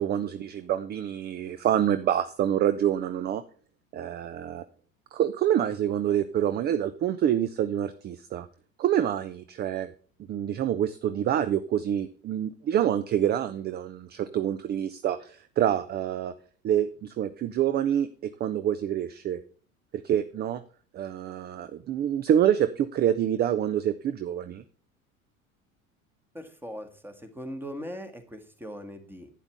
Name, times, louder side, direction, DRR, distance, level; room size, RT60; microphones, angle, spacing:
voice 1, 0.0-3.4 3.9-4.6 5.1-8.5 8.8-9.9 10.3-16.3 16.6-19.4 20.0-20.6 20.9-24.6, right 10 dB, 25° right, 12 dB, 0.6 m, -27 dB
voice 2, 26.3-29.3, equal, 5° right, 7 dB, 1.8 m, -40 dB
11.5 x 9.3 x 3.5 m, 0.43 s
figure-of-eight pair, 75°, 42 cm